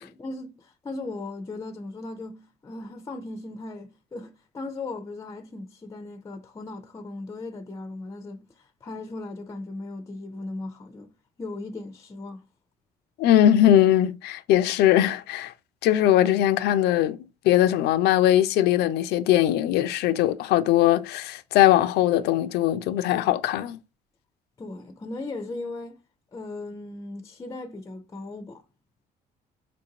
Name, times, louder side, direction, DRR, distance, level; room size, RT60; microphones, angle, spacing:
voice 1, 0.0-11.1 11.4-12.4 24.6-26.0 26.3-28.6, left 2 dB, 20° left, 0.5 m, -37 dB
voice 2, 13.2-15.5 15.8-23.8, left 12 dB, 80° left, 0.4 m, -20 dB
4.4 x 2.6 x 2.8 m
cardioid pair, 110°, 17 cm